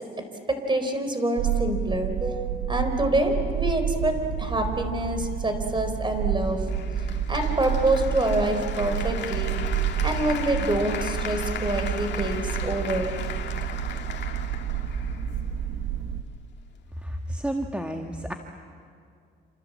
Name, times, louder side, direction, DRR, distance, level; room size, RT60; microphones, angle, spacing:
voice 1, 0.5-6.7 7.3-9.7 10.0-13.1, right 1 dB, 25° right, 6 dB, 4.5 m, -26 dB
sound 1, 1.4-16.2, right 8 dB, 80° right, 1.4 m, -29 dB
Applause, 6.7-15.7, left 8 dB, 60° left, 2.1 m, -37 dB
voice 2, 17.0-18.3, right 1 dB, 5° right, 3 dB, 1.7 m, -31 dB
28.0 x 27.5 x 7.7 m, 2.3 s
cardioid pair, 90°, 20 cm